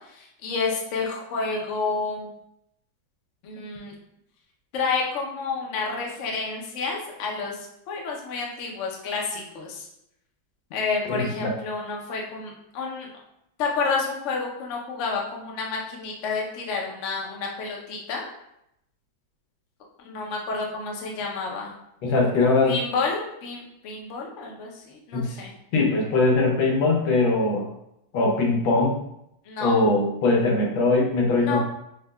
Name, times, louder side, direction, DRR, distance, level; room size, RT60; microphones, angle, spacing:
voice 1, 0.1-2.3 3.4-3.9 4.7-7.6 7.9-9.9 10.7-13.1 13.6-18.3 20.0-21.7 22.7-25.5 29.5-29.8 31.4-31.6, left 4 dB, 65° left, -1 dB, 0.7 m, -30 dB
voice 2, 11.1-11.5 22.0-22.7 25.1-25.3 25.7-27.7 28.1-29.0 29.6-31.6, left 3 dB, 85° left, 0 dB, 1.5 m, -21 dB
6.2 x 2.2 x 2.2 m, 0.80 s
omnidirectional pair, 2.1 m